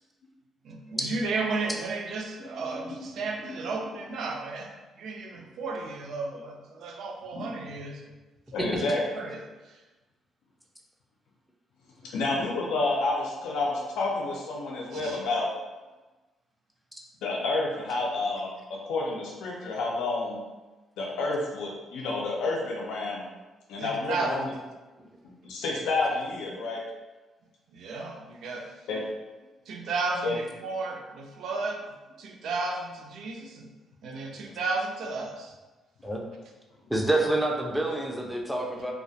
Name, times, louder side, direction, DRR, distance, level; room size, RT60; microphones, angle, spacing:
voice 1, 0.6-4.7 5.0-8.0 9.1-9.4 14.9-15.2 23.8-24.3 27.7-28.7 29.7-31.8 32.2-33.7 34.0-35.5, right 3 dB, 75° right, 2 dB, 0.3 m, -33 dB
voice 2, 8.5-9.0 12.1-15.5 17.2-20.4 21.0-23.2 23.7-24.5 25.4-26.8 28.9-29.0 30.2-30.4, left 3 dB, 85° left, -2 dB, 0.4 m, -29 dB
voice 3, 36.9-38.9, right 1 dB, 5° right, -1 dB, 0.4 m, -27 dB
2.2 x 2.0 x 2.6 m, 1.2 s
cardioid pair, 90°, 0 cm